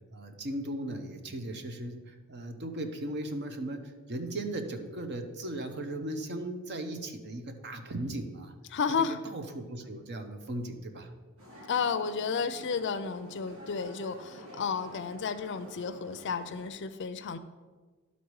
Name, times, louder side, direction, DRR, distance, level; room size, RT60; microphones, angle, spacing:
voice 1, 0.1-8.5 9.0-9.1 9.3-11.1, right 1 dB, 50° right, 6 dB, 0.8 m, -37 dB
voice 2, 8.7-9.2 11.7-17.4, left 5 dB, 55° left, 11 dB, 0.5 m, -32 dB
sound 1, 11.4-16.7, equal, 70° right, 1.8 m, -50 dB
11.5 x 4.1 x 4.7 m, 1.4 s
head